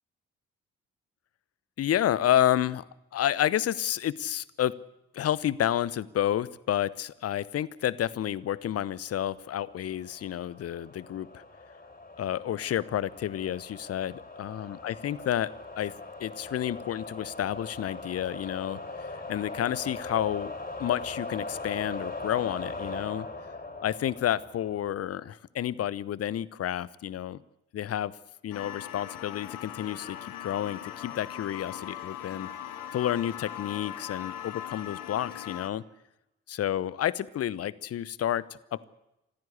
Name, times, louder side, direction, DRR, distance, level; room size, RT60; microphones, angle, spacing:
voice 1, 1.8-2.8 3.1-4.8 5.1-11.4 12.2-15.9 16.2-20.5 20.8-23.3 23.8-27.4 27.7-28.2 28.4-32.5 32.9-35.8 36.5-38.4 38.7-38.8, left 11 dB, 45° left, 21 dB, 0.9 m, -30 dB
sound 1, 8.9-25.2, left 2 dB, 25° left, 6.5 m, -41 dB
sound 2, 28.5-35.7, left 11 dB, 65° left, 1.5 m, -40 dB
24.5 x 15.5 x 8.3 m, 0.91 s
figure-of-eight pair, 40°, 35 cm